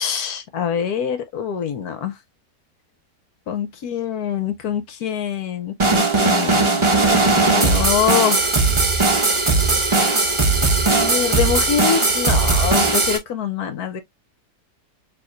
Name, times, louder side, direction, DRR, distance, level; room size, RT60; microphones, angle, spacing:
voice 1, 0.0-2.1 3.5-8.4 10.9-14.0, left 8 dB, 70° left, 1.2 m, -25 dB
Rock drum loop, 5.8-13.2, right 3 dB, 25° right, 0.7 m, -18 dB
4.6 x 3.0 x 2.5 m
omnidirectional pair, 1.8 m